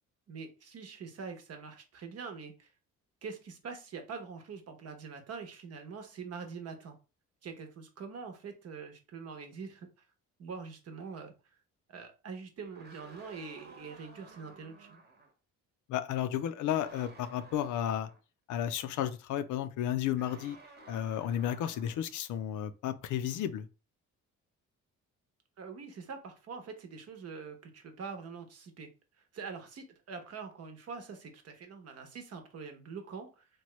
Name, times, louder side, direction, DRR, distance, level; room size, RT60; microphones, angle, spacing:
voice 1, 0.3-2.7 3.2-7.0 7.4-9.9 10.4-11.3 11.9-15.0 25.6-28.9 29.3-33.5, right 5 dB, 55° right, 0.9 m, -44 dB
sound 1, 12.6-15.3 16.7-18.2 20.2-22.1, right 3 dB, 35° right, 0.9 m, -54 dB
voice 2, 15.9-18.1 18.5-20.6 20.9-23.7, left 10 dB, 80° left, 0.5 m, -33 dB
3.0 x 2.2 x 3.0 m
cardioid pair, 90°, 30 cm